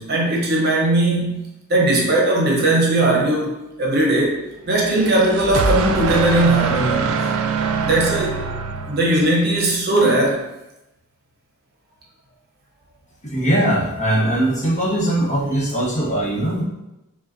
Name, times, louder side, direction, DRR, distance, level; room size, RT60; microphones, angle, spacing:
voice 1, 0.0-1.4 1.7-4.4 4.7-7.1 7.8-8.4 8.9-10.4 15.4-15.5, right 2 dB, 50° right, -1 dB, 0.8 m, -18 dB
sound 1, 4.9-9.4, right 5 dB, 90° right, 0.4 m, -23 dB
voice 2, 13.2-16.6, right 1 dB, 35° left, -6 dB, 1.0 m, -20 dB
5.4 x 2.2 x 2.5 m, 0.96 s
head